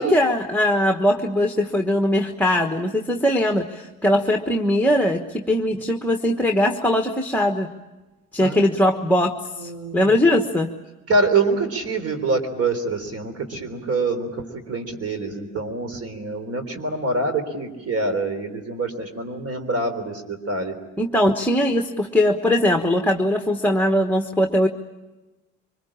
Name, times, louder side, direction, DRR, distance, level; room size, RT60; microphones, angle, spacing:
voice 1, 0.0-7.7 8.3-9.3 9.6-10.7 21.0-24.7, left 1 dB, 5° left, 3 dB, 1.3 m, -20 dB
voice 2, 9.6-10.2 11.1-14.3 14.7-20.7, right 3 dB, 50° right, 9 dB, 3.6 m, -25 dB
24.5 x 21.5 x 8.7 m, 1.1 s
cardioid pair, 90°, 30 cm